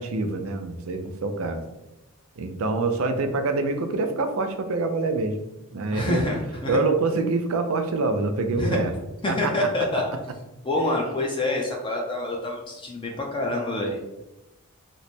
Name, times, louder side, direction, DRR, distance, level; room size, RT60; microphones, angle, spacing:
voice 1, 0.0-1.6 2.4-5.3 5.7-6.3 6.7-8.9 9.3-9.5, right 3 dB, 70° right, 7 dB, 0.4 m, -25 dB
voice 2, 5.9-6.8 8.6-8.8 9.2-10.0 10.6-14.1, left 2 dB, 20° left, -1 dB, 0.4 m, -26 dB
3.1 x 2.0 x 4.1 m, 0.96 s
head